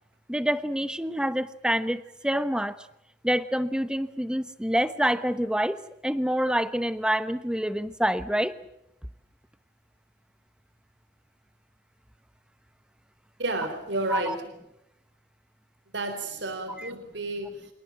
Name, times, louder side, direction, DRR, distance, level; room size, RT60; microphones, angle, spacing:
voice 1, 0.3-2.8 3.2-8.5 14.1-14.3 16.8-16.9, equal, 5° right, 13 dB, 1.0 m, -27 dB
voice 2, 13.4-14.4 15.9-17.7, right 2 dB, 70° right, 9 dB, 3.7 m, -31 dB
28.0 x 18.5 x 8.9 m, 0.83 s
head